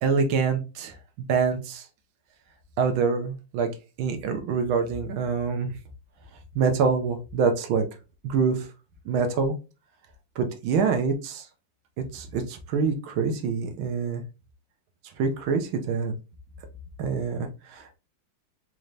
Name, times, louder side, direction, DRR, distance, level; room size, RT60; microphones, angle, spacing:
voice 1, 0.0-0.9 1.3-1.8 2.8-3.7 4.0-5.7 6.5-7.8 8.2-8.6 9.1-9.5 10.4-11.4 12.1-14.2 15.2-16.1 17.0-18.0, right 5 dB, 80° right, 6 dB, 1.6 m, -25 dB
4.4 x 2.6 x 3.2 m, 0.30 s
omnidirectional pair, 2.2 m